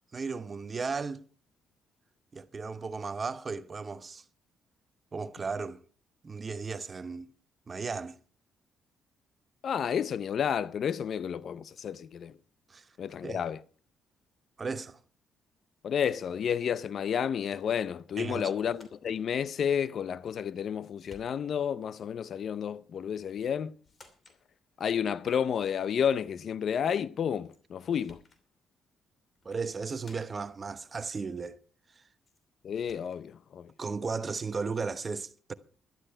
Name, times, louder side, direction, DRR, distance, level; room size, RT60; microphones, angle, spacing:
voice 1, 0.1-1.2 2.3-4.2 5.1-5.8 6.2-7.3 7.7-8.2 12.7-12.8 13.2-13.4 14.6-15.0 18.2-18.5 29.4-31.6 32.0-32.1 33.8-35.5, right 4 dB, 35° right, 0.9 m, -35 dB
voice 2, 9.6-12.4 13.0-13.6 15.8-23.8 24.8-28.2 32.6-33.7, left 8 dB, 60° left, 0.5 m, -31 dB
sound 1, 17.5-17.7 18.6-19.2 20.3-20.7 21.0-21.7 23.3-23.5 23.8-24.4 27.5-27.6 27.9-28.4 29.3-29.6 29.9-30.5 32.3-32.4 32.7-33.2, left 3 dB, 35° left, 2.8 m, -58 dB
12.0 x 12.0 x 5.6 m
cardioid pair, 90°, 0 cm